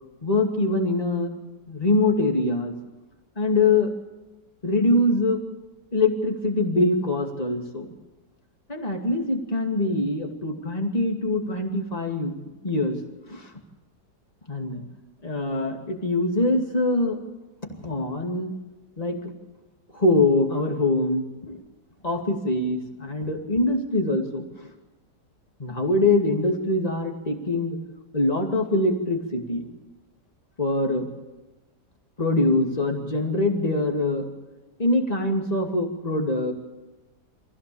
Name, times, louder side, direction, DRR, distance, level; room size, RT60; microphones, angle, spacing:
voice 1, 0.2-1.3 1.7-2.7 3.4-3.9 4.6-5.4 5.9-7.9 8.7-12.3 12.6-13.0 13.3-13.5 14.5-14.8 15.2-17.2 17.7-18.5 19.0-19.2 19.9-21.6 22.0-24.7 25.6-27.8 28.1-29.7 30.6-31.1 32.2-34.2 34.8-36.5, left 2 dB, 20° left, 2 dB, 2.6 m, -23 dB
25.5 x 16.0 x 7.0 m, 1.1 s
omnidirectional pair, 1.8 m